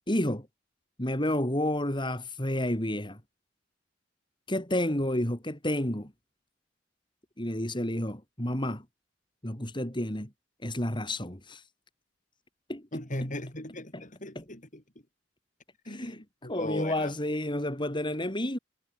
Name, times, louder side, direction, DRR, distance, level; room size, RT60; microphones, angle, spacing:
voice 1, 0.1-0.5 1.0-3.2 4.5-6.1 7.4-8.8 9.4-10.3 10.6-11.6 12.7-13.3 13.9-14.0 14.4-14.5 15.9-18.6, left 1 dB, 25° left, 5.3 m, -30 dB
voice 2, 12.9-14.8 15.9-17.1, left 1 dB, 45° left, 6.1 m, -38 dB
head